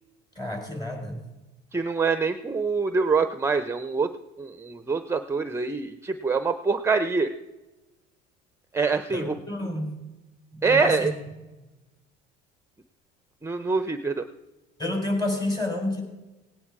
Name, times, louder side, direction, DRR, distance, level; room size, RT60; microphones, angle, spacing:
voice 1, 0.4-1.2 9.1-10.0 10.5-11.1 14.8-16.0, left 1 dB, 20° left, 3 dB, 4.2 m, -29 dB
voice 2, 1.7-4.1 4.4-7.3 8.7-9.4 10.6-11.1 13.4-14.3, right 4 dB, 10° right, 9 dB, 0.7 m, -25 dB
18.0 x 9.9 x 4.8 m, 1.1 s
supercardioid pair, 100°, 21 cm